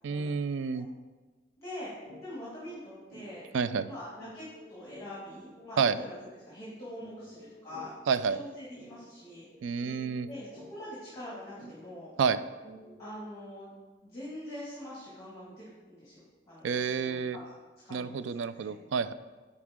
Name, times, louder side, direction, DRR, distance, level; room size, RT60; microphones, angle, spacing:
voice 1, 0.0-0.9 3.5-3.9 5.8-6.0 8.1-8.4 9.6-10.3 12.2-12.4 16.6-17.4 17.9-19.1, right 6 dB, 85° right, 13 dB, 0.3 m, -29 dB
voice 2, 1.6-1.9 2.2-3.4 3.8-7.9 8.3-9.4 9.8-9.9 10.3-12.1 13.0-13.7 14.0-17.5 17.8-18.7, left 1 dB, 15° left, -8 dB, 1.9 m, -44 dB
sound 1, 2.0-2.2 2.6-2.7 3.1-13.3, equal, ahead, 2.3 m, -52 dB
9.4 x 4.3 x 3.7 m, 1.3 s
head